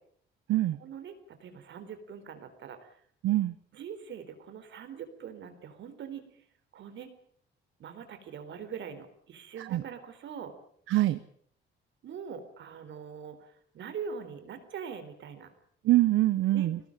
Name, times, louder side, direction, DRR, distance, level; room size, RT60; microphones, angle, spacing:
voice 1, 0.8-1.1 1.4-3.0 3.7-6.4 6.7-7.1 7.8-10.5 12.0-15.5 16.5-16.7, right 7 dB, 70° right, 9 dB, 4.1 m, -42 dB
voice 2, 3.2-3.5 9.6-9.8 10.9-11.2 15.8-16.8, right 16 dB, 85° right, 13 dB, 0.9 m, -24 dB
21.0 x 18.0 x 8.8 m, 0.63 s
cardioid pair, 90°, 20 cm